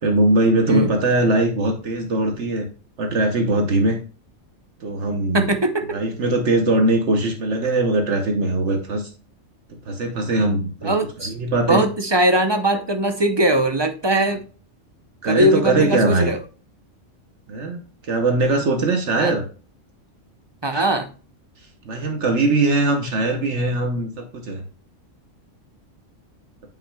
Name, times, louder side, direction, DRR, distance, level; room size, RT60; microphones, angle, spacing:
voice 1, 0.0-2.7 3.0-4.0 4.8-5.5 5.9-9.1 9.9-10.9 11.3-11.8 15.2-16.3 17.5-19.4 21.8-24.6, right 2 dB, 65° right, 4 dB, 1.2 m, -20 dB
voice 2, 5.3-6.0 10.8-11.3 11.7-14.4 15.2-16.4 19.2-19.3 20.6-21.1, right 1 dB, 35° right, 7 dB, 0.4 m, -20 dB
9.0 x 5.8 x 2.3 m, 0.38 s
omnidirectional pair, 1.3 m